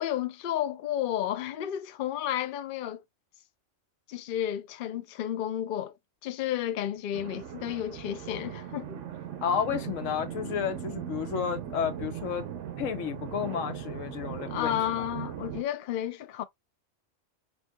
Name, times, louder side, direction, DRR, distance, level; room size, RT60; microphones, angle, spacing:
voice 1, 0.0-3.0 4.1-5.9 6.2-9.0 14.5-16.4, left 11 dB, 60° left, 0.6 m, -32 dB
sound 1, 7.1-15.6, right 10 dB, 75° right, 1.0 m, -39 dB
voice 2, 9.4-12.5 12.8-15.0, left 8 dB, 85° left, 1.1 m, -31 dB
4.3 x 2.7 x 2.2 m
omnidirectional pair, 1.3 m